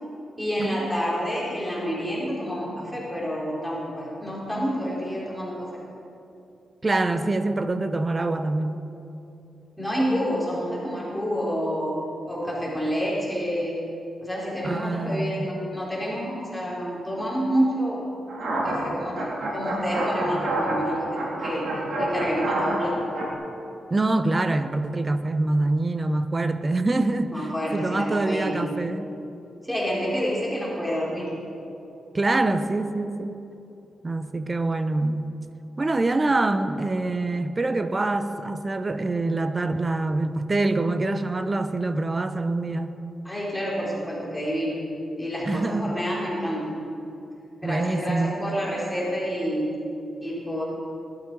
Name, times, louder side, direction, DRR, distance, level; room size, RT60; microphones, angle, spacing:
voice 1, 0.4-5.7 9.8-12.0 12.3-13.8 14.2-18.1 18.6-21.7 22.0-23.0 27.3-28.6 29.6-31.3 43.2-44.8 45.2-46.7 47.6-49.7 50.2-50.6, equal, ahead, -6 dB, 4.2 m, -28 dB
voice 2, 6.8-8.8 14.6-15.5 23.9-29.1 32.1-33.4 34.0-35.3 35.8-42.9 45.4-46.0 47.6-48.5, right 2 dB, 30° right, 9 dB, 0.9 m, -25 dB
sound 1, 18.3-23.3, right 1 dB, 80° right, 3.7 m, -28 dB
20.5 x 12.5 x 4.8 m, 2.8 s
cardioid pair, 90°, 0 cm